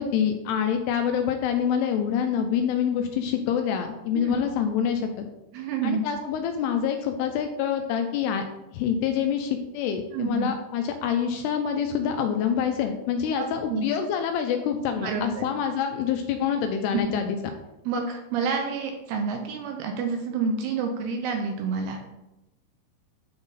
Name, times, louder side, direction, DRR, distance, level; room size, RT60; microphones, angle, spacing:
voice 1, 0.0-5.3 5.8-8.4 8.7-17.4, left 8 dB, 80° left, 5 dB, 2.5 m, -26 dB
voice 2, 5.5-6.1 10.1-10.5 13.4-13.9 15.0-15.5 16.9-17.0 17.8-22.0, right 5 dB, 80° right, 3 dB, 2.4 m, -28 dB
9.6 x 3.8 x 4.0 m, 0.93 s
omnidirectional pair, 5.1 m